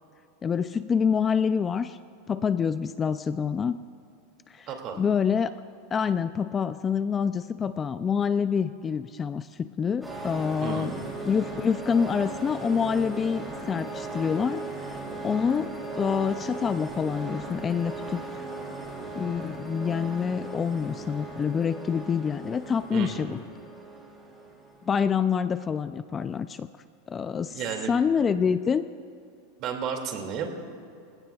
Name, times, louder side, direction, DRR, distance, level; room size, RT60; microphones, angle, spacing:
voice 1, 0.4-2.0 2.3-3.8 4.5-4.7 4.9-5.5 5.9-11.0 11.3-18.5 19.1-23.4 24.9-26.7 27.1-27.6 27.9-28.9, left 6 dB, 20° left, 12 dB, 0.3 m, -27 dB
voice 2, 4.7-5.0 10.6-11.0 22.9-23.3 27.5-27.9 29.6-30.6, right 7 dB, 40° right, 3 dB, 2.3 m, -32 dB
sound 1, 10.0-25.1, right 3 dB, 5° right, 3.0 m, -38 dB
28.5 x 16.5 x 2.3 m, 2.4 s
supercardioid pair, 150°, 0 cm